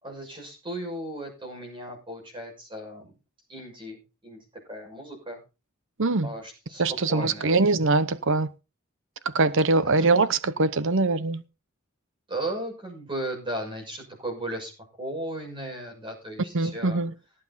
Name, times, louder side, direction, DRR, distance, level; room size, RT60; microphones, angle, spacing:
voice 1, 0.0-3.1 3.5-5.4 6.2-6.8 7.1-7.5 10.0-10.1 12.3-14.7 15.0-17.0, right 1 dB, 25° right, 6.5 m, -36 dB
voice 2, 6.8-8.5 9.3-11.4 16.5-17.1, right 3 dB, 65° right, 0.9 m, -22 dB
18.0 x 8.0 x 4.2 m
head